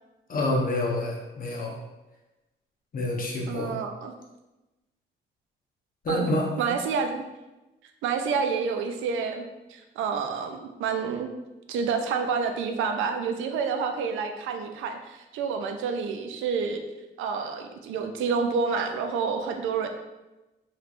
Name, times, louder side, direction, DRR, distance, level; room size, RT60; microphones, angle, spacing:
voice 1, 0.3-1.8 2.9-3.7 6.0-6.5, left 1 dB, 45° left, -2 dB, 0.8 m, -27 dB
voice 2, 3.5-4.1 6.1-6.3 6.6-7.2 8.0-9.4 9.7-11.3 11.7-16.8 17.2-19.9, right 5 dB, 85° right, 6 dB, 0.4 m, -28 dB
3.2 x 3.1 x 2.5 m, 1.0 s
cardioid pair, 90°, 20 cm